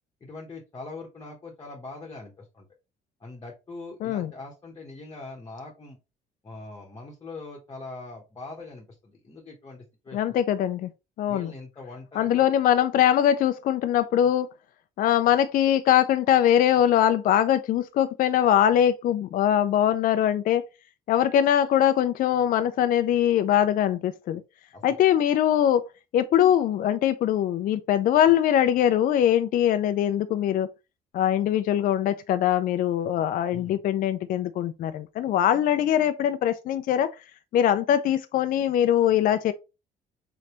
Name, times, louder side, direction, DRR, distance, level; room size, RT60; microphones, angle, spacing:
voice 1, 0.2-2.7 3.2-6.0 6.4-10.3 11.3-12.5 24.7-25.0 33.5-33.8, left 3 dB, 25° left, 1.0 m, -42 dB
voice 2, 4.0-4.3 10.1-10.9 11.2-11.5 12.2-14.5 15.0-20.6 21.1-24.4 24.8-25.8 26.1-30.7 31.1-37.1 37.5-39.5, left 10 dB, 55° left, 0.4 m, -22 dB
3.9 x 3.3 x 2.9 m
cardioid pair, 110°, 17 cm